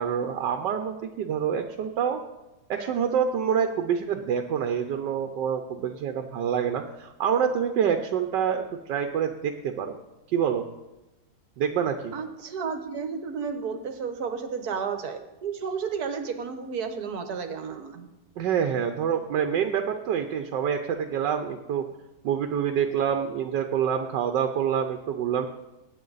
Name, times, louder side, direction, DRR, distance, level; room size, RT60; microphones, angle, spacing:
voice 1, 0.0-2.2 2.7-10.0 10.3-10.6 11.6-12.1 18.4-21.8 22.2-25.5, right 8 dB, 90° right, 6 dB, 1.4 m, -26 dB
voice 2, 12.1-18.1, right 6 dB, 65° right, 8 dB, 1.6 m, -32 dB
19.5 x 8.7 x 4.0 m, 1.0 s
omnidirectional pair, 1.8 m